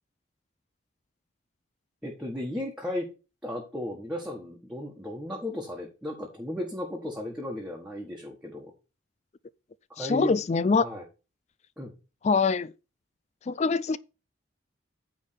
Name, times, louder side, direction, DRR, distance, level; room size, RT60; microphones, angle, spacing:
voice 1, 2.0-3.1 3.4-8.7 10.0-10.4 10.8-11.0 11.8-11.9, left 1 dB, 5° right, 1.5 m, -35 dB
voice 2, 10.0-10.9 12.2-12.7 13.5-14.0, left 4 dB, 35° left, 0.3 m, -24 dB
9.4 x 3.6 x 6.8 m
head